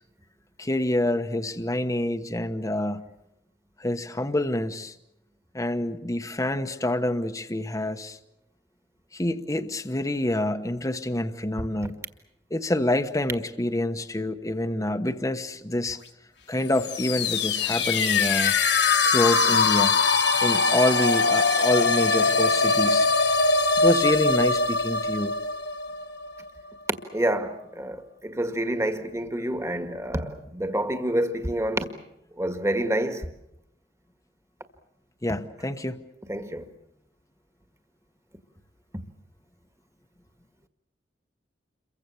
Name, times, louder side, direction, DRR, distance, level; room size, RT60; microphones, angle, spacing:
voice 1, 0.6-3.0 3.8-4.9 5.5-8.2 9.1-12.0 12.5-16.0 16.5-18.6 19.0-19.9 20.4-23.1 23.8-25.3 35.2-36.0, left 1 dB, 20° left, 1.1 m, -27 dB
sound 1, 16.7-26.5, left 4 dB, 65° left, 1.8 m, -22 dB
voice 2, 27.1-31.9 32.4-33.3 36.3-36.7, right 1 dB, 15° right, 1.8 m, -28 dB
28.5 x 23.5 x 7.1 m
head